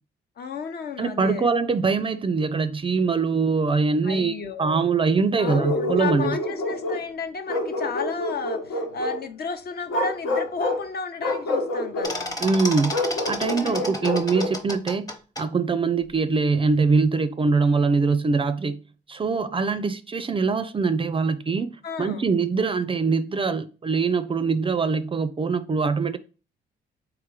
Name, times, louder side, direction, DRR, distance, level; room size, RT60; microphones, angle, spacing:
voice 1, 0.4-1.5 4.0-4.9 5.4-12.4 13.5-14.1 21.8-22.3, left 5 dB, 55° left, 0.7 m, -33 dB
voice 2, 1.0-6.4 12.4-15.1 15.4-18.8 19.1-21.7 22.0-26.2, right 4 dB, 25° right, 0.4 m, -23 dB
Bark, 5.4-7.1 7.5-9.2 9.9-10.8 11.2-12.1 12.9-14.6, left 1 dB, 80° left, 1.2 m, -27 dB
sound 1, 12.0-15.4, left 1 dB, 20° left, 0.9 m, -31 dB
3.6 x 3.0 x 4.7 m
cardioid pair, 90°, 20 cm